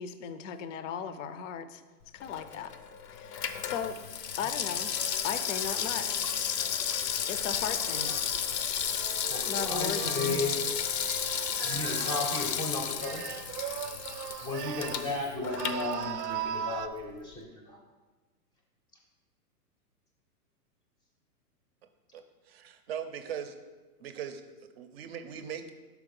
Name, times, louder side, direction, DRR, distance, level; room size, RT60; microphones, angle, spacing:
voice 1, 0.0-1.8 2.1-2.7 3.1-3.4 3.6-4.0 4.4-4.9 5.2-6.2 7.3-8.1 9.4-10.4, left 7 dB, 55° left, 11 dB, 0.5 m, -36 dB
Water tap faucet / Sink (filling or washing), 2.2-16.5 16.8-16.9, left 8 dB, 90° left, 0.8 m, -33 dB
sound 1, 5.0-8.3 8.9-12.6 13.0-15.2 15.4-16.9, right 10 dB, 80° right, 0.6 m, -40 dB
voice 2, 9.3-10.5 11.6-13.4 14.4-17.8, left 2 dB, 10° left, 0 dB, 0.6 m, -34 dB
voice 3, 22.1-23.5 24.0-24.4 24.8-25.7, right 8 dB, 40° right, 9 dB, 0.6 m, -39 dB
6.1 x 4.7 x 5.2 m, 1.3 s
hypercardioid pair, 145°, 47 cm